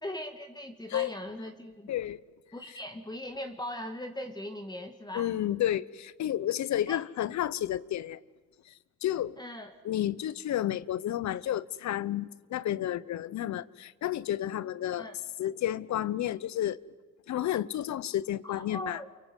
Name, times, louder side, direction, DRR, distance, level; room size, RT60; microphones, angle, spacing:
voice 1, 0.0-1.9 2.5-5.3 6.9-7.0 9.4-9.8 15.0-15.2 18.4-19.1, left 1 dB, 15° left, 2.0 m, -39 dB
voice 2, 1.9-2.2 5.1-8.2 8.7-8.8 9.0-9.4 9.8-15.1 15.4-16.8 17.3-19.0, left 12 dB, 65° left, 0.9 m, -31 dB
29.5 x 23.0 x 8.2 m
cardioid pair, 90°, 30 cm